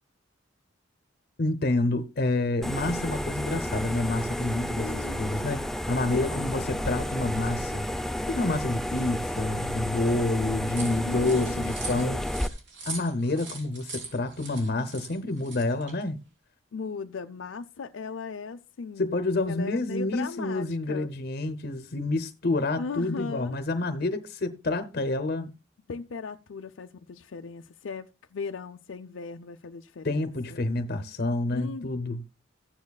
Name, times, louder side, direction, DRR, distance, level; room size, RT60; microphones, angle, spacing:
voice 1, 1.4-5.6 5.9-7.9 8.3-12.3 12.8-16.2 19.0-25.5 30.0-32.2, left 2 dB, 55° left, 0.8 m, -28 dB
sound 1, 2.6-12.5, left 1 dB, ahead, 0.4 m, -31 dB
voice 2, 4.7-5.4 6.1-6.6 11.0-11.7 16.7-19.2 19.5-21.1 22.8-23.6 25.9-30.6 31.5-31.9, left 4 dB, 80° left, 0.5 m, -38 dB
sound 2, 10.7-16.0, right 3 dB, 65° right, 3.6 m, -41 dB
14.5 x 9.6 x 2.3 m
head